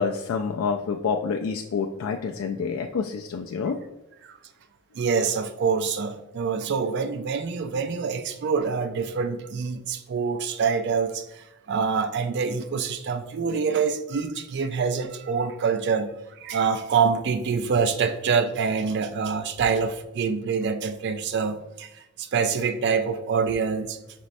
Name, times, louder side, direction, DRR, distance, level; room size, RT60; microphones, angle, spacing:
voice 1, 0.0-3.8, left 5 dB, 75° left, 2 dB, 0.3 m, -28 dB
voice 2, 4.9-24.0, right 5 dB, 55° right, 8 dB, 0.4 m, -26 dB
5.2 x 3.1 x 2.6 m, 0.96 s
head